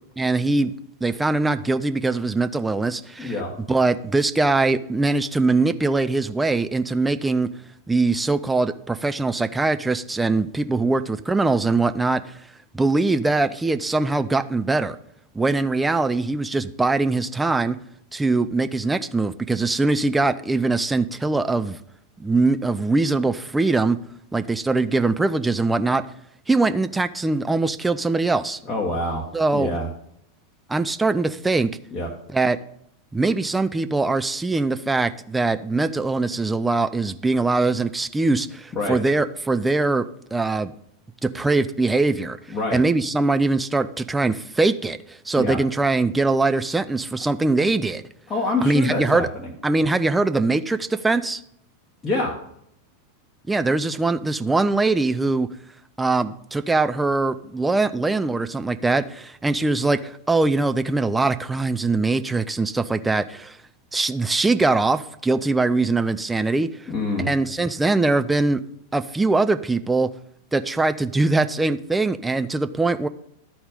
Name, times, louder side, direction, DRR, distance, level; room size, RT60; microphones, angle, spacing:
voice 1, 0.2-0.7 1.0-3.3 3.7-7.5 7.9-12.4 12.7-15.0 15.3-17.8 18.1-21.8 22.2-24.0 24.3-26.0 26.5-28.6 29.3-29.8 30.7-31.7 32.3-32.6 33.1-40.0 40.3-40.7 41.2-48.0 48.6-49.3 49.6-51.4 53.5-55.5 56.0-63.6 63.9-66.9 67.2-68.6 68.9-70.1 70.5-73.1, right 3 dB, 10° right, 10 dB, 0.4 m, -22 dB
voice 2, 3.2-3.5 28.7-29.2 29.5-29.9 31.9-32.1 38.7-39.0 42.5-42.8 45.4-45.6 48.3-49.5 52.0-52.3 66.9-67.3, left 2 dB, 20° left, -3 dB, 1.5 m, -25 dB
12.5 x 4.3 x 5.2 m, 0.73 s
figure-of-eight pair, 90°, 0 cm